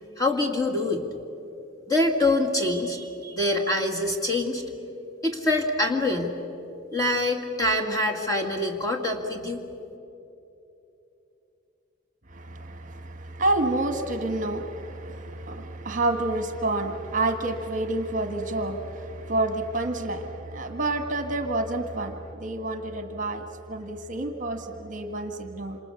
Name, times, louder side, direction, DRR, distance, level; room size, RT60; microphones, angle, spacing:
voice 1, 0.2-1.0 1.9-4.6 5.2-6.3 6.9-9.6, left 1 dB, 15° left, 1 dB, 2.1 m, -25 dB
voice 2, 12.3-25.8, right 2 dB, 40° right, 6 dB, 1.4 m, -29 dB
27.0 x 27.0 x 7.0 m, 2.9 s
head